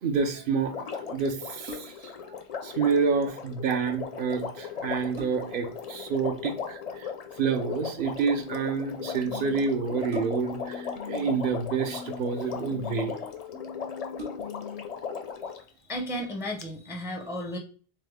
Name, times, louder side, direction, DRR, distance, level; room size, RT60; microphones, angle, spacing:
voice 1, 0.0-2.1 2.6-7.1 7.4-13.1, right 5 dB, 65° right, 7 dB, 0.7 m, -28 dB
Water, 0.7-15.7 16.6-16.7, left 6 dB, 50° left, 0.5 m, -37 dB
sound 1, 1.6-2.2 4.2-4.3 4.8-5.7 7.3-7.6 10.1-10.7 11.7-12.4 13.1-13.2 13.5-13.6 14.1-14.8 15.3-15.4, equal, 80° right, 1.1 m, -44 dB
sound 2, 8.4-11.4 11.8-14.8, left 6 dB, 80° left, 0.8 m, -42 dB
voice 2, 15.8-17.6, equal, 5° right, 2 dB, 0.4 m, -33 dB
3.5 x 3.2 x 3.5 m, 0.39 s
omnidirectional pair, 1.0 m